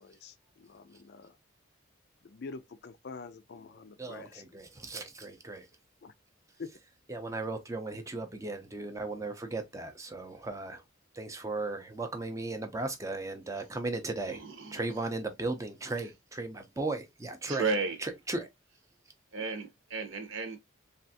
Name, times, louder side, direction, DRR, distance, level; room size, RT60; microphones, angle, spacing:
voice 1, 0.0-1.3 2.2-4.4 6.0-6.1 6.6-6.8, left 4 dB, 50° left, 0.4 m, -46 dB
voice 2, 4.0-5.7 7.1-10.8 11.1-14.4 14.7-17.7 18.0-18.5, right 2 dB, 15° right, 0.5 m, -36 dB
voice 3, 14.4-14.8 17.5-18.0 19.3-20.6, right 4 dB, 70° right, 0.8 m, -33 dB
3.3 x 2.4 x 2.6 m
head